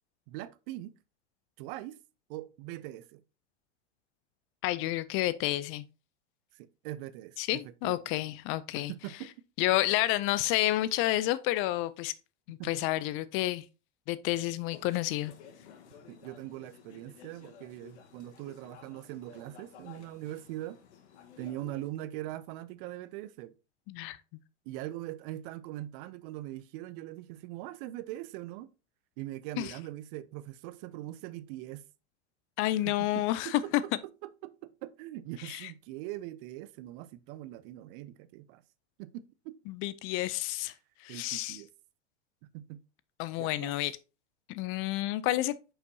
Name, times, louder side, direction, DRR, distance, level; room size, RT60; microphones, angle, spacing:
voice 1, 0.3-0.9 1.6-2.0 2.3-3.2 6.5-8.0 8.7-9.3 12.6-12.7 16.1-20.8 21.4-23.5 24.7-28.7 29.2-31.8 32.8-33.6 34.4-38.6 39.0-39.6 41.1-41.7 42.5-42.8 43.4-43.7, right 15 dB, 50° right, 0.6 m, -42 dB
voice 2, 4.6-5.8 7.4-8.9 9.6-12.1 12.5-13.6 14.1-15.3 23.9-24.2 29.6-29.7 32.6-33.8 35.4-35.7 39.7-40.7 41.0-41.6 43.2-43.9 44.5-45.6, left 16 dB, 40° left, 0.4 m, -30 dB
sound 1, 14.7-21.9, left 7 dB, 75° left, 1.3 m, -54 dB
6.6 x 5.6 x 2.7 m
hypercardioid pair, 110°, 35 cm